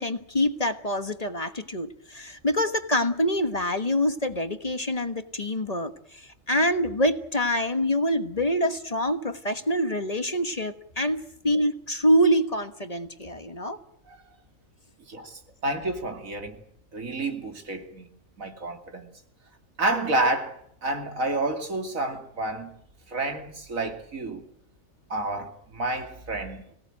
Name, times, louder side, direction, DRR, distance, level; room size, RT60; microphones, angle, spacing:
voice 1, 0.0-6.2 6.5-13.8, equal, 30° left, 1.4 m, -25 dB
voice 2, 15.1-16.6 16.9-18.1 18.4-19.1 19.8-22.8 23.1-24.5 25.1-26.7, right 2 dB, 85° right, 3.1 m, -30 dB
25.5 x 17.5 x 9.0 m
omnidirectional pair, 1.4 m